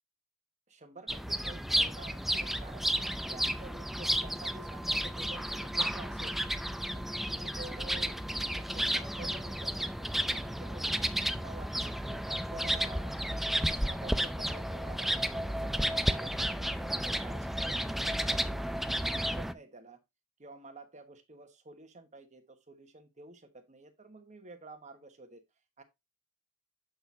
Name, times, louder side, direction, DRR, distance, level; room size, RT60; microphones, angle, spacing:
voice 1, 0.7-2.9 3.3-6.4 6.9-10.9 11.2-13.2 13.7-18.7 19.0-20.0 20.4-25.4 25.8-25.9, right 3 dB, 35° right, 1.2 m, -50 dB
sound 1, 1.1-19.5, equal, ahead, 0.4 m, -32 dB
7.8 x 6.4 x 2.7 m
head